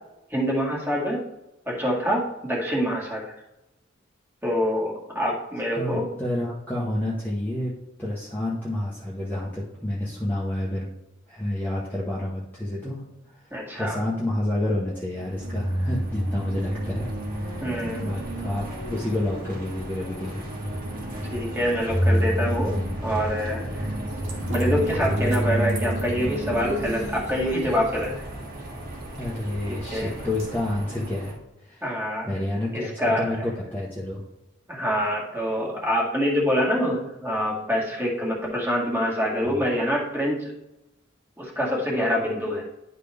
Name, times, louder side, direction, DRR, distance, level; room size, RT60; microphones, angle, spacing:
voice 1, 0.3-1.2 1.7-3.3 4.4-6.1 13.5-14.0 17.6-18.1 21.3-23.9 24.5-28.2 29.7-30.1 31.8-32.3 32.7-33.3 34.7-40.6 41.4-42.6, equal, 10° right, -4 dB, 2.0 m, -26 dB
voice 2, 5.7-7.7 8.0-10.9 11.3-13.0 13.3-13.4 13.7-17.1 17.4-17.7 18.0-20.4 29.2-31.3 31.6-31.8 32.2-34.2 39.4-39.6, left 1 dB, 10° left, -7 dB, 1.1 m, -29 dB
sound 1, 15.2-31.3, right 1 dB, 45° right, 1.8 m, -30 dB
sound 2, 24.1-30.7, right 2 dB, 75° right, 2.2 m, -42 dB
10.5 x 4.2 x 3.5 m, 0.94 s
head